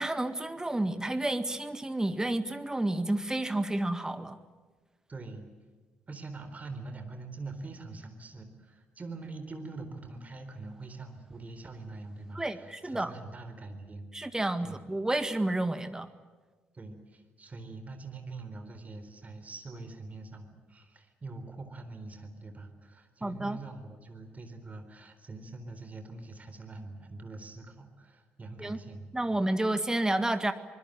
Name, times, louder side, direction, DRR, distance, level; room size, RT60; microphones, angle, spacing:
voice 1, 0.0-4.4 12.4-13.1 14.1-16.1 23.2-23.6 28.6-28.8 29.1-30.5, right 1 dB, 10° right, 10 dB, 1.8 m, -30 dB
voice 2, 5.1-5.5 6.1-14.1 14.6-14.8 15.7-15.9 16.7-29.4, right 3 dB, 30° right, 7 dB, 4.0 m, -44 dB
25.0 x 20.5 x 9.0 m, 1.4 s
figure-of-eight pair, 45°, 5 cm